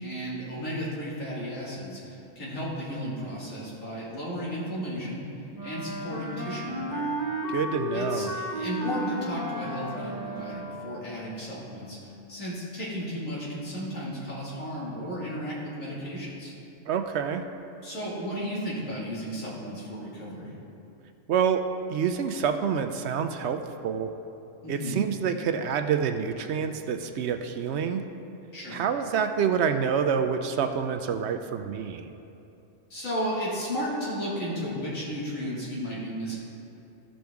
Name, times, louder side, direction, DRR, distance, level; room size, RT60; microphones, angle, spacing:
voice 1, 0.0-5.3 5.6-7.2 7.9-16.5 17.8-20.5 24.6-25.0 28.5-28.8 32.9-36.4, equal, 85° left, -7 dB, 2.5 m, -34 dB
Wind instrument woodwind instrument, 5.5-11.1, equal, 15° right, 1.0 m, -33 dB
voice 2, 7.5-8.3 16.9-17.4 21.3-21.6 21.9-24.1 24.7-28.0 28.7-32.1, right 7 dB, 65° right, 7 dB, 0.8 m, -27 dB
14.0 x 6.2 x 3.5 m, 2.8 s
omnidirectional pair, 1.3 m